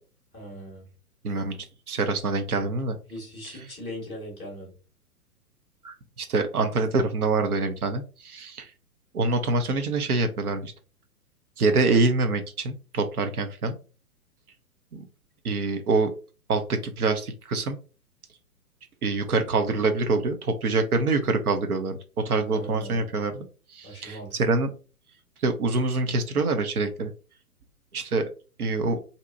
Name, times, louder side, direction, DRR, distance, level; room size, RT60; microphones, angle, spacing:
voice 1, 0.3-0.8 3.1-4.7 22.5-23.1 23.8-24.4, equal, ahead, -12 dB, 0.5 m, -39 dB
voice 2, 1.2-1.6 1.9-3.0 3.4-3.6 5.8-8.7 9.1-10.7 11.6-13.8 14.9-15.0 15.4-16.1 16.5-17.8 19.0-22.0 22.2-23.5 23.7-24.7 25.4-27.1 27.9-28.3 28.6-29.0, right 3 dB, 70° right, 7 dB, 0.7 m, -25 dB
2.7 x 2.1 x 2.6 m, 0.35 s
figure-of-eight pair, 115°, 46 cm